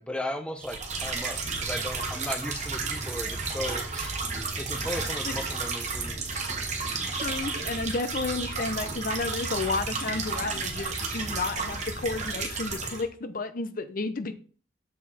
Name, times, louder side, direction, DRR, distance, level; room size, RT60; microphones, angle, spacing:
voice 1, 0.0-4.2 4.6-6.2, left 1 dB, 5° left, 0.6 m, -36 dB
sound 1, 0.6-13.0, right 4 dB, 35° right, 1.4 m, -32 dB
voice 2, 7.1-14.3, left 3 dB, 45° left, 0.6 m, -32 dB
7.2 x 4.8 x 4.2 m
head